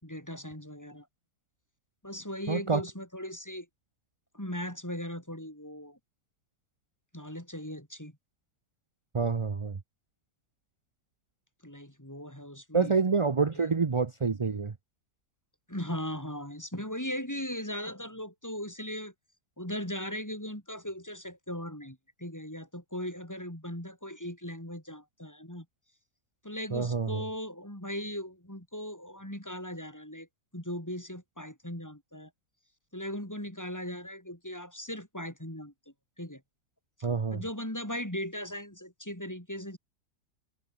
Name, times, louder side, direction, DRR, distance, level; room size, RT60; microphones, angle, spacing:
voice 1, 0.0-1.1 2.0-3.7 4.3-6.0 7.1-8.1 11.6-12.9 13.5-13.6 15.7-19.1 19.6-25.7 26.4-30.3 30.5-32.3 32.9-35.7 36.2-36.4 37.0-39.8, equal, 10° left, 5.2 m, -38 dB
voice 2, 2.5-2.8 9.1-9.8 12.7-14.7 26.7-27.2 37.0-37.4, right 4 dB, 35° right, 0.5 m, -27 dB
omnidirectional pair, 1.8 m